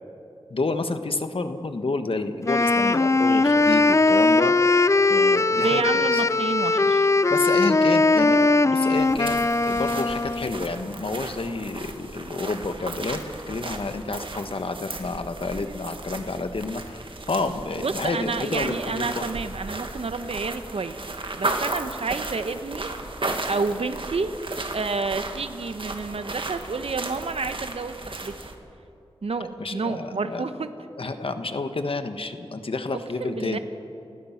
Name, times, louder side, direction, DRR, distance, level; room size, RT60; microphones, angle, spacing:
voice 1, 0.5-4.6 5.1-5.8 6.1-6.2 7.3-13.2 13.5-17.0 17.3-19.2 29.6-30.4 31.0-33.6, left 3 dB, 65° left, 8 dB, 1.4 m, -29 dB
Wind instrument woodwind instrument, 2.4-10.5, left 3 dB, 30° left, 0.5 m, -20 dB
voice 2, 5.6-7.1 17.8-21.0 21.4-22.9 23.4-24.3 24.7-28.4 29.2-30.7 32.9-33.6, right 4 dB, 80° right, 9 dB, 1.2 m, -29 dB
sound 1, 8.9-28.5, right 2 dB, 60° right, 2.0 m, -35 dB
29.5 x 16.5 x 5.9 m, 2.8 s
wide cardioid pair, 60°, 10 cm